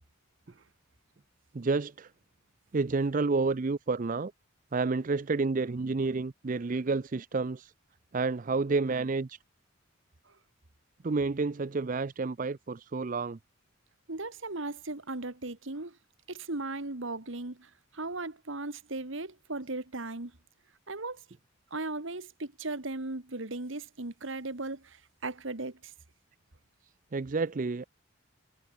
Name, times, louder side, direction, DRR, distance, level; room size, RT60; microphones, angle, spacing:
voice 1, 1.5-2.1 2.7-4.3 4.7-7.7 8.1-9.4 11.0-13.4 27.1-27.9, right 3 dB, 40° right, 0.5 m, -30 dB
voice 2, 14.1-16.0 16.3-20.3 20.9-21.2 21.7-25.9, right 2 dB, 60° right, 1.7 m, -37 dB
head